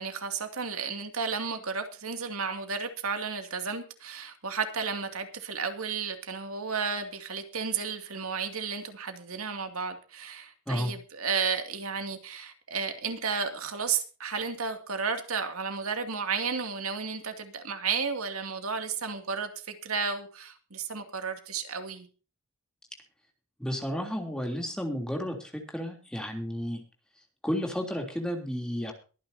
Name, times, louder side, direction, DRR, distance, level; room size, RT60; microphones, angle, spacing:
voice 1, 0.0-22.1, right 5 dB, 80° right, 6 dB, 2.5 m, -33 dB
voice 2, 23.6-26.8 27.4-28.9, equal, 5° left, 2 dB, 3.2 m, -32 dB
23.0 x 10.0 x 2.8 m, 0.36 s
head